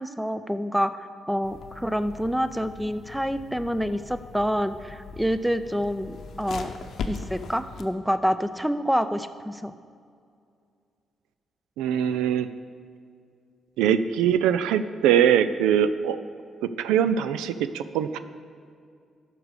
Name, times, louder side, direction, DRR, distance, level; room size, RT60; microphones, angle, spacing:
voice 1, 0.0-6.7 7.1-9.7, equal, ahead, 12 dB, 0.5 m, -27 dB
sound 1, 1.4-7.8, left 5 dB, 65° left, 0.8 m, -40 dB
voice 2, 11.8-12.5 13.8-16.2 16.6-18.2, right 9 dB, 90° right, 12 dB, 0.3 m, -22 dB
12.0 x 4.9 x 6.5 m, 2.3 s
supercardioid pair, 60°, 0 cm